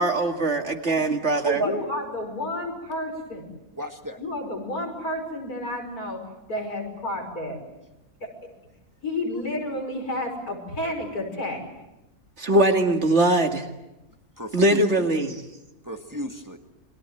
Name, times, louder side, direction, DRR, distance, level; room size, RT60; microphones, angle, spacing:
voice 1, 0.0-1.6 12.4-13.7 14.5-15.4, right 1 dB, 50° right, 5 dB, 2.4 m, -21 dB
voice 2, 1.5-3.5 4.2-6.2 6.5-7.6 9.0-11.6, left 1 dB, 90° left, 2 dB, 6.2 m, -31 dB
voice 3, 3.8-4.2 9.4-9.5 14.4-15.1 15.8-16.6, right 1 dB, 15° right, 5 dB, 1.7 m, -32 dB
29.0 x 23.5 x 7.9 m, 0.95 s
omnidirectional pair, 1.5 m